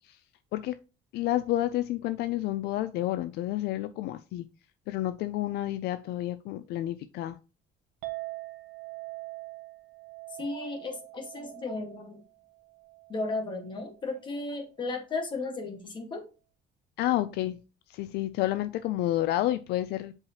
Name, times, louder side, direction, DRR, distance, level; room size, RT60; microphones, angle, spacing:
voice 1, 1.1-4.4 4.9-7.4 17.0-17.6 17.9-20.1, left 14 dB, 70° left, 12 dB, 0.4 m, -30 dB
Chink clink, 8.0-14.3, right 21 dB, 70° right, 1.1 m, -44 dB
voice 2, 10.4-12.2 13.1-16.2, left 3 dB, 25° left, 4 dB, 1.5 m, -34 dB
7.5 x 4.7 x 2.8 m, 0.32 s
cardioid pair, 175°, 17 cm